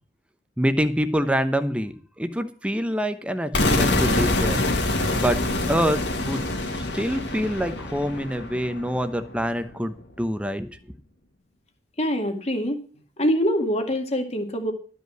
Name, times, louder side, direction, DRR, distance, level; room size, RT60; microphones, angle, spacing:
voice 1, 0.6-4.6 5.2-5.4 5.7-6.4 6.9-10.7, equal, 5° right, 9 dB, 0.9 m, -26 dB
sound 1, 3.5-9.4, left 2 dB, 70° left, 2.1 m, -25 dB
voice 2, 12.0-12.8 13.2-14.7, equal, 35° left, 4 dB, 2.0 m, -24 dB
12.5 x 5.6 x 7.7 m, 0.41 s
head